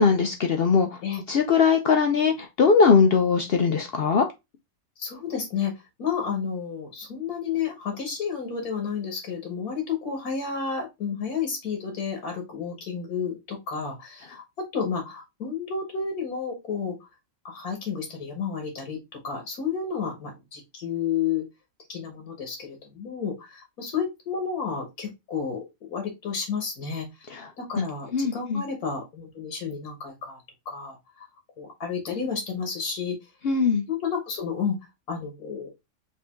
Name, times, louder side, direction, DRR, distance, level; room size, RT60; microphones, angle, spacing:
voice 1, 0.0-0.9 1.3-4.3 27.8-27.9 28.1-28.6 33.4-33.9, left 5 dB, 65° left, 0.6 m, -20 dB
voice 2, 5.0-5.7 6.0-17.0 17.4-21.4 21.9-31.3 31.6-33.2 33.9-34.7 35.1-35.7, left 6 dB, 80° left, 1.7 m, -31 dB
4.9 x 2.8 x 3.4 m
omnidirectional pair, 1.5 m